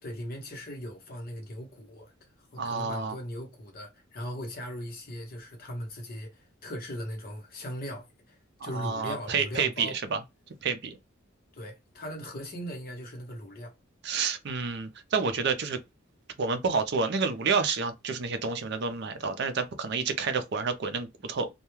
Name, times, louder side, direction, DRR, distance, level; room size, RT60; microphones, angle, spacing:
voice 1, 0.0-2.1 2.5-10.0 11.5-13.7, equal, 45° left, 0.9 m, -39 dB
voice 2, 2.6-3.2 8.6-10.2 10.6-11.0 14.0-15.8 16.4-21.5, right 5 dB, 55° right, 0.5 m, -29 dB
2.3 x 2.2 x 3.0 m
head